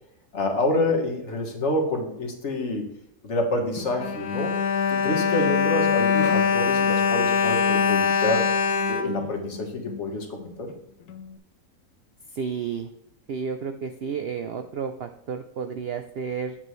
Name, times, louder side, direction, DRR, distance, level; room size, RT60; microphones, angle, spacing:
voice 1, 0.3-2.9 3.2-4.5 4.9-8.5 8.9-10.7, left 2 dB, 50° left, 2 dB, 1.7 m, -27 dB
Bowed string instrument, 3.8-10.0 10.7-10.8 11.1-11.2, left 6 dB, 85° left, 1.3 m, -23 dB
voice 2, 12.3-12.9 13.3-16.6, right 6 dB, 85° right, 8 dB, 0.5 m, -31 dB
8.7 x 7.7 x 3.2 m, 0.79 s
omnidirectional pair, 1.6 m